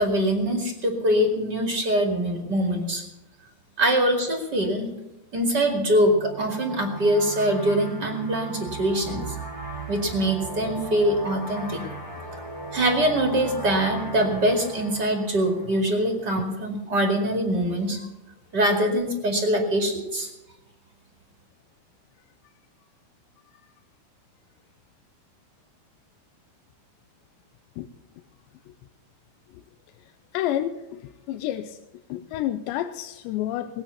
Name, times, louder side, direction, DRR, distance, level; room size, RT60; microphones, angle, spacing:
voice 1, 0.0-3.0 3.8-4.9 5.3-9.2 9.9-11.8 12.7-18.1 18.5-20.3, right 1 dB, 35° right, 2 dB, 2.0 m, -23 dB
sound 1, 5.9-16.3, right 1 dB, 10° right, 1.9 m, -37 dB
voice 2, 30.3-31.8 32.1-33.8, left 12 dB, 90° left, 9 dB, 2.9 m, -29 dB
20.0 x 8.9 x 7.0 m, 0.97 s
omnidirectional pair, 4.9 m